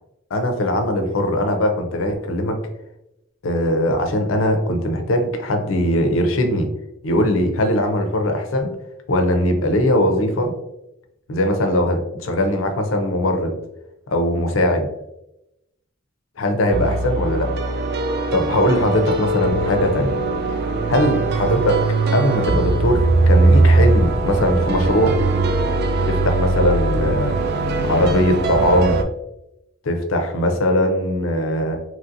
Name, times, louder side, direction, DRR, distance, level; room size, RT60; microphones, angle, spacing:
voice 1, 0.3-2.6 3.4-6.7 7.0-8.7 9.1-10.5 11.3-13.6 14.1-14.9 16.4-17.5 18.3-20.2 20.9-21.8 22.1-25.2 26.1-27.4 27.8-29.0 29.8-31.8, left 1 dB, 90° left, 5 dB, 0.5 m, -20 dB
sound 1, 16.7-29.0, right 3 dB, 55° right, 0.3 m, -20 dB
3.0 x 2.7 x 2.5 m, 0.87 s
head